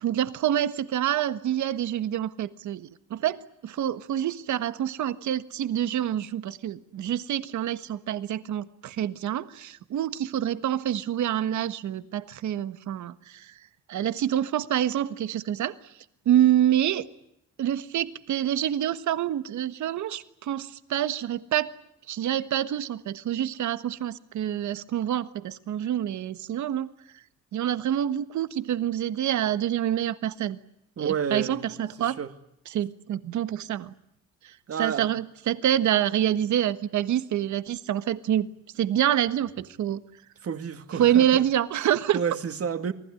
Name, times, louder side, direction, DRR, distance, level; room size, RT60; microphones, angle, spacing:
voice 1, 0.0-13.5 13.9-15.7 16.2-17.0 17.6-21.7 22.1-26.9 27.5-30.6 31.0-32.2 32.7-33.9 34.8-38.5 38.8-40.0 41.0-42.2, right 11 dB, 70° right, 1.5 m, -26 dB
voice 2, 31.0-31.7 32.0-32.3 34.7-35.1 40.4-41.5 42.1-42.9, right 7 dB, 50° right, 2.5 m, -30 dB
28.0 x 19.5 x 9.9 m
cardioid pair, 90°, 30 cm